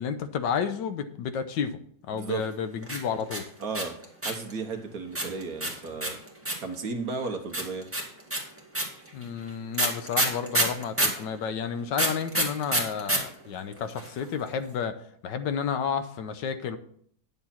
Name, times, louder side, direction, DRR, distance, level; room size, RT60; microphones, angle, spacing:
voice 1, 0.0-1.8 2.0-3.4 9.1-16.8, left 7 dB, 75° left, 10 dB, 1.3 m, -31 dB
voice 2, 2.1-2.5 3.6-3.9 4.2-6.2 6.6-7.9, right 4 dB, 55° right, 5 dB, 1.4 m, -34 dB
sound 1, 2.8-4.5 5.1-6.7 7.5-11.2 11.9-13.2 13.4-13.5 13.7-14.2, right 1 dB, 5° right, 1.8 m, -26 dB
10.0 x 7.0 x 4.3 m, 0.65 s
omnidirectional pair, 2.0 m